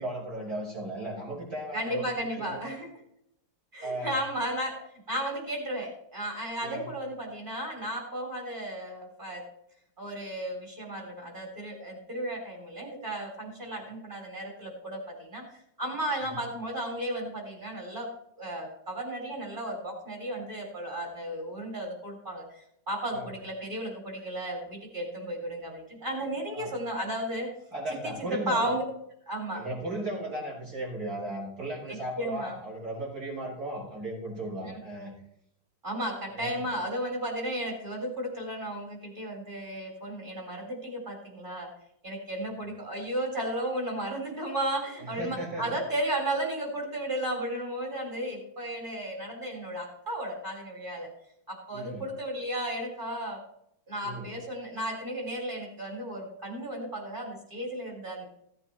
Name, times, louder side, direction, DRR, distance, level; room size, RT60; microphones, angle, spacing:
voice 1, 0.0-2.6 3.8-4.1 6.6-6.9 16.2-16.4 23.1-23.3 26.5-26.7 27.7-28.7 29.5-35.1 36.3-36.6 42.5-42.7 45.0-45.8 51.7-52.0 54.0-54.3, right 1 dB, 45° right, -4 dB, 6.6 m, -36 dB
voice 2, 1.7-2.9 3.7-4.8 5.1-9.4 10.0-15.4 15.8-18.1 18.4-27.5 28.0-28.8 29.3-29.6 31.9-32.5 34.6-34.8 35.8-41.7 42.0-51.1 51.5-53.4 53.9-58.3, right 1 dB, 25° right, 1 dB, 4.4 m, -34 dB
16.5 x 9.0 x 4.4 m, 0.74 s
omnidirectional pair, 2.2 m